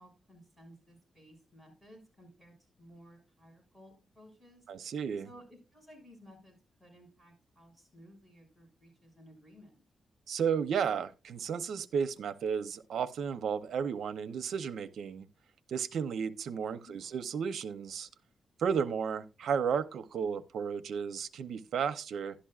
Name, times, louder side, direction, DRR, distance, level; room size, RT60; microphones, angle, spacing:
voice 1, 0.0-4.7 5.2-9.8 16.8-17.1, equal, 10° right, 6.2 m, -57 dB
voice 2, 4.7-5.3 10.3-15.3 15.7-18.1 18.6-22.3, right 7 dB, 80° right, 0.8 m, -33 dB
11.5 x 11.5 x 2.4 m
cardioid pair, 105°, 0 cm